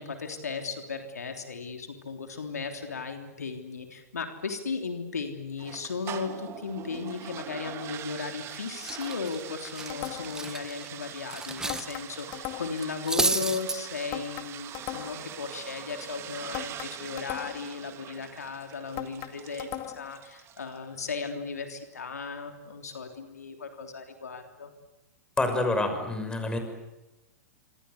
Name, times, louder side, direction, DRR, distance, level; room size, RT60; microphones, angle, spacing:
voice 1, 0.0-24.7, left 5 dB, 80° left, 5 dB, 3.3 m, -36 dB
sound 1, 5.6-20.8, right 11 dB, 30° right, 2.2 m, -43 dB
Cutlery silverware, 8.2-8.5 8.8-11.9 12.2-12.4 12.8-13.8, right 2 dB, 5° right, 1.4 m, -31 dB
sound 2, 9.9-10.5 11.7-12.9 14.1-15.3 16.5-17.8 19.0-20.2, left 15 dB, 40° left, 2.2 m, -38 dB
voice 2, 25.4-26.6, left 2 dB, 10° left, 6 dB, 6.0 m, -27 dB
27.0 x 26.0 x 8.2 m, 1.0 s
hypercardioid pair, 105°, 9 cm